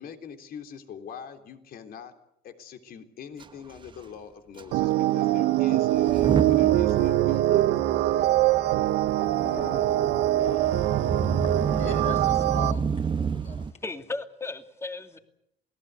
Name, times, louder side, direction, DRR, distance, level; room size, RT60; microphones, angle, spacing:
voice 1, 0.0-2.1 2.4-7.7, left 7 dB, 60° left, 6 dB, 3.4 m, -43 dB
Motor vehicle (road) / Engine starting / Accelerating revving vroom, 3.4-3.5 3.7-3.9 4.6-4.7 5.9-13.7, right 5 dB, 30° right, 1.1 m, -31 dB
sound 1, 4.7-12.7, right 15 dB, 85° right, 1.0 m, -23 dB
sound 2, 6.9-7.8 9.4-10.4, left 3 dB, 80° left, 6.1 m, -40 dB
voice 2, 10.4-13.8, left 5 dB, 40° left, 5 dB, 6.6 m, -41 dB
voice 3, 13.8-15.2, left 3 dB, 15° left, 7 dB, 2.5 m, -35 dB
28.5 x 19.0 x 8.2 m, 0.78 s
cardioid pair, 110°, 17 cm